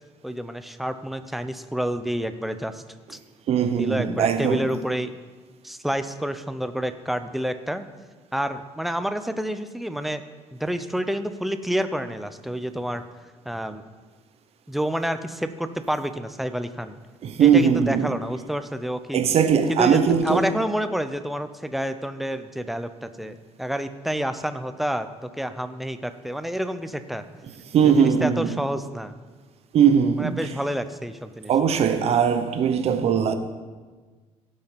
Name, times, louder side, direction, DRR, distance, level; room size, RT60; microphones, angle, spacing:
voice 1, 0.2-2.8 3.1-3.2 3.8-5.1 5.6-7.9 8.3-10.2 10.5-13.0 13.4-13.8 14.7-16.9 17.4-19.2 19.7-27.2 27.8-29.1 30.2-31.8, equal, ahead, 0.6 m, -29 dB
voice 2, 3.5-4.6 17.2-18.1 19.1-20.4 27.7-28.5 29.7-30.3 31.5-33.3, right 7 dB, 60° right, 0.9 m, -20 dB
16.5 x 5.6 x 5.2 m
cardioid pair, 110°, 12 cm